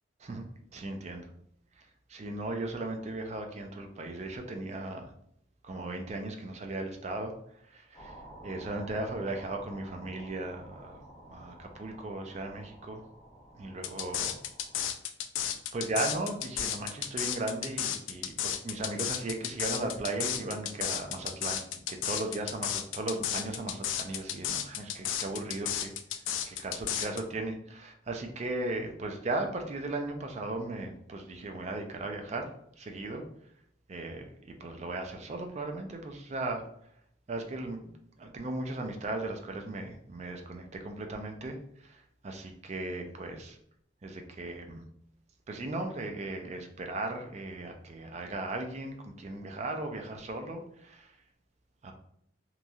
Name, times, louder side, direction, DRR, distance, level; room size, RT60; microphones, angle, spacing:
voice 1, 0.7-1.3 2.1-5.1 5.6-7.3 7.7-8.2 8.4-13.0 13.5-14.4 15.7-25.9 26.5-32.5 32.8-33.3 33.9-36.6 37.3-37.9 38.2-43.6 44.0-44.8 45.5-51.1 51.8-51.9, right 2 dB, 35° right, 4 dB, 0.4 m, -37 dB
sound 1, 7.9-14.8, right 1 dB, 20° left, 0.5 m, -51 dB
sound 2, 13.8-27.2, left 10 dB, 80° left, 0.3 m, -33 dB
3.0 x 2.6 x 2.3 m, 0.70 s
head